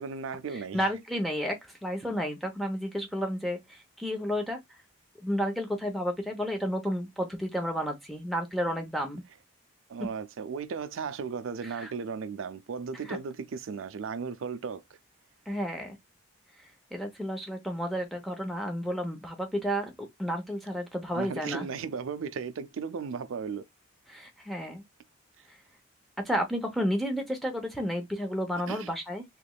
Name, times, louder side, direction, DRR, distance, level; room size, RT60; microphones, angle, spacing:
voice 1, 0.0-0.9 9.9-15.0 21.1-23.6 28.7-28.9, right 5 dB, 80° right, 0.4 m, -36 dB
voice 2, 0.7-4.6 5.2-9.2 11.8-11.9 13.1-13.2 15.5-16.0 16.9-21.7 24.1-24.8 26.2-29.2, equal, ahead, 0.8 m, -31 dB
3.4 x 3.1 x 2.3 m
head